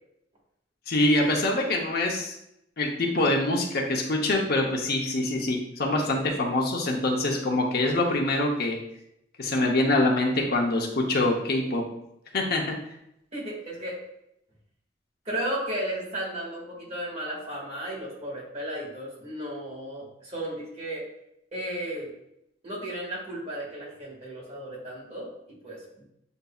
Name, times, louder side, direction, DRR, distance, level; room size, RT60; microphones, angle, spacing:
voice 1, 0.9-2.4 2.8-8.8 9.4-11.8 12.3-12.8, left 2 dB, 55° left, 1 dB, 0.7 m, -25 dB
voice 2, 13.3-14.0 15.2-21.0 21.5-22.1 22.6-26.0, right 1 dB, 35° right, -5 dB, 1.7 m, -34 dB
7.9 x 2.6 x 2.3 m, 0.79 s
head